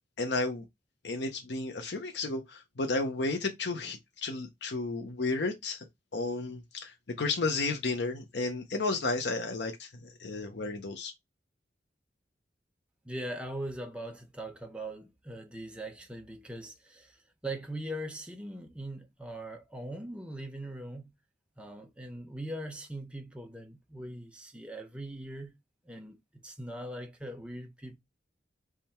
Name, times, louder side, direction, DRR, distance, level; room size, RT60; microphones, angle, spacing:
voice 1, 0.2-0.6 1.0-5.8 6.1-11.1, left 3 dB, 65° left, 0.7 m, -32 dB
voice 2, 13.0-21.1 21.6-25.5 25.9-26.2 26.4-28.0, right 1 dB, 5° right, 0.9 m, -41 dB
3.6 x 3.3 x 4.3 m
head